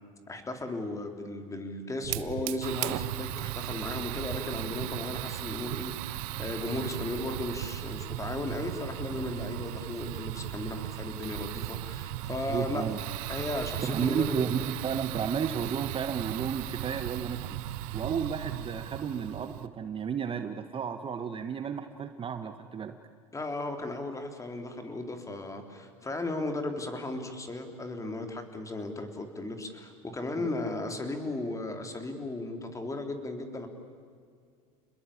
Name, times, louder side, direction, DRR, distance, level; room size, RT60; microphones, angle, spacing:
voice 1, 0.3-12.8 13.3-14.4 23.3-33.7, left 2 dB, 15° left, 6 dB, 3.7 m, -36 dB
Fire, 2.0-19.7, right 14 dB, 65° right, 1.1 m, -36 dB
voice 2, 12.5-13.0 13.8-17.6 17.9-23.0 30.4-30.5, right 7 dB, 30° right, 8 dB, 1.4 m, -32 dB
30.0 x 21.0 x 8.6 m, 2.2 s
hypercardioid pair, 100°, 19 cm